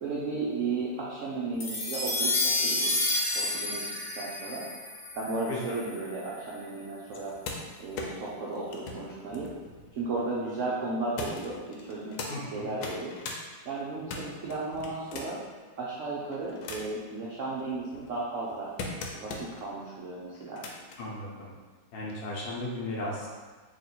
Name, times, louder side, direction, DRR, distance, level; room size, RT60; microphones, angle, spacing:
voice 1, 0.0-3.8 4.2-4.6 5.1-7.3 7.8-9.5 9.9-13.1 13.7-15.4 15.8-18.7 19.1-20.6, right 3 dB, 75° right, -6 dB, 0.7 m, -34 dB
sound 1, 1.6-6.1, left 2 dB, 45° left, 0.9 m, -30 dB
sound 2, 7.1-10.4 11.2-12.3 12.7-13.4 13.8-15.5 16.1-17.0 17.6-19.6 20.3-21.0 22.1-22.2, left 3 dB, 90° left, 1.3 m, -40 dB
voice 2, 12.3-12.7 21.0-21.5 21.9-23.3, left 2 dB, 65° left, -4 dB, 1.1 m, -35 dB
3.0 x 2.9 x 4.1 m, 1.4 s
omnidirectional pair, 2.0 m